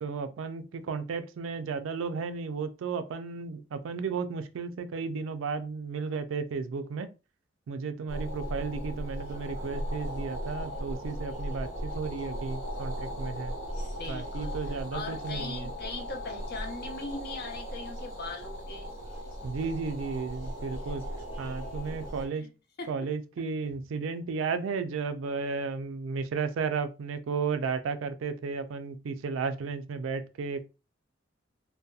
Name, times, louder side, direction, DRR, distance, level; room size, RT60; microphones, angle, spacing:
voice 1, 0.0-7.1 7.7-13.5 14.1-15.7 19.4-21.0 21.4-22.5 22.9-30.6, right 5 dB, 85° right, 0.4 m, -34 dB
sound 1, 8.1-22.3, equal, 75° left, 1.0 m, -37 dB
voice 2, 13.9-19.0 22.3-22.5 22.8-22.9, left 3 dB, 55° left, 0.6 m, -40 dB
2.7 x 2.1 x 2.3 m
head